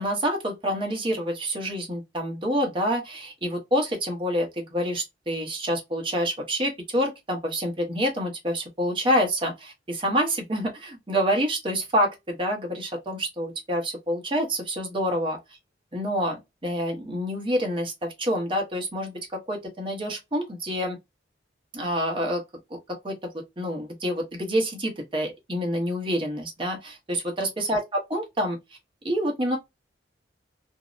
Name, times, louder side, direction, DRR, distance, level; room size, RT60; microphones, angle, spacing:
voice 1, 0.0-15.4 15.9-21.0 21.7-22.4 23.0-23.2 23.6-28.6 29.0-29.6, equal, 30° right, 0.8 m, -27 dB
2.6 x 2.0 x 2.3 m
head